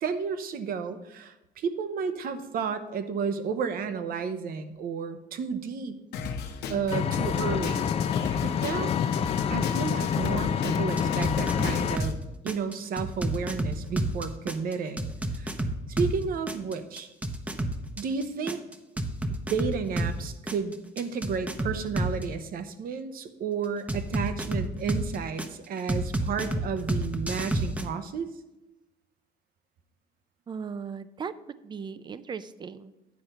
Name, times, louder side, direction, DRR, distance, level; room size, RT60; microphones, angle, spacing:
voice 1, 0.0-6.0 6.7-7.9 8.4-9.0 9.5-12.2 12.4-15.1 15.3-15.5 15.9-17.1 18.0-18.6 19.5-28.3, right 6 dB, 60° right, 10 dB, 0.9 m, -32 dB
Drum kit, 6.1-12.1, left 5 dB, 80° left, 1.0 m, -35 dB
Engine, 6.9-12.0, left 8 dB, 35° left, 0.4 m, -27 dB
sound 1, 11.0-12.2 12.5-16.2 16.5-20.2 20.5-22.2 23.9-25.5 25.9-27.8, right 1 dB, 10° right, 0.8 m, -30 dB
voice 2, 30.5-31.3 31.6-32.9, right 6 dB, 25° right, 14 dB, 0.5 m, -37 dB
9.5 x 4.4 x 6.6 m, 0.98 s
cardioid pair, 110°, 17 cm